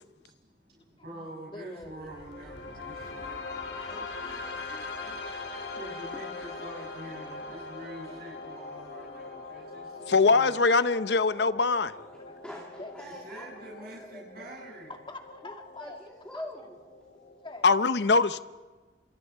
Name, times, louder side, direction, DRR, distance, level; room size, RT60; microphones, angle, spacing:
voice 1, 0.2-3.4 3.7-4.3 5.7-10.6 13.0-14.9, right 1 dB, 60° right, 6.5 m, -46 dB
voice 2, 0.8-2.2 3.1-3.8 4.2-5.8 12.3-12.9 14.9-16.0 16.3-16.4 17.4-17.8, left 2 dB, 30° left, 2.3 m, -47 dB
sound 1, 1.8-17.8, left 3 dB, 85° left, 3.9 m, -42 dB
voice 3, 3.9-4.4 5.2-5.3 6.1-6.5 12.1-14.6 15.4-15.5 15.8-17.2, left 1 dB, 5° left, 2.3 m, -45 dB
voice 4, 10.1-11.9 17.6-18.4, left 4 dB, 70° left, 0.7 m, -22 dB
29.5 x 27.0 x 4.6 m
head